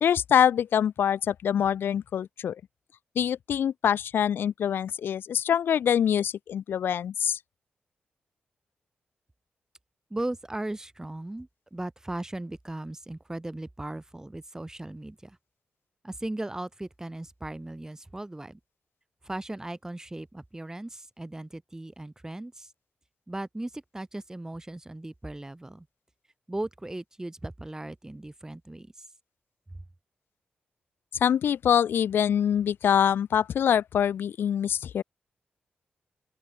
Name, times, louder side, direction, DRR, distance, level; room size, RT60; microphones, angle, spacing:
voice 1, 0.0-2.6 3.2-7.4 31.2-35.0, left 9 dB, 80° left, 0.7 m, -24 dB
voice 2, 10.1-15.4 16.0-18.6 19.2-22.7 23.3-25.9 26.5-28.9, right 1 dB, 15° right, 4.6 m, -37 dB
open air
cardioid pair, 75°, 4 cm